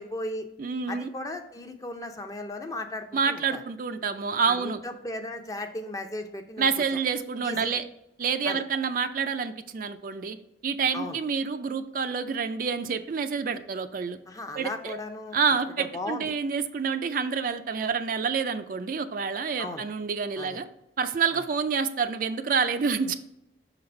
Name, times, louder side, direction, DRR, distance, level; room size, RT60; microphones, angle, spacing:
voice 1, 0.0-0.5 0.9-3.6 4.5-7.0 7.4-7.8 8.4-8.6 10.9-11.2 14.3-15.4 15.8-16.3 19.6-19.8 20.4-20.6 21.3-21.4, left 1 dB, 20° left, 6 dB, 0.5 m, -36 dB
voice 2, 0.6-1.1 3.1-4.8 6.6-7.8 8.2-10.4 10.6-14.2 14.5-15.0 15.3-20.7 21.0-23.1, right 5 dB, 50° right, 9 dB, 0.4 m, -28 dB
6.0 x 4.0 x 4.3 m, 0.81 s
head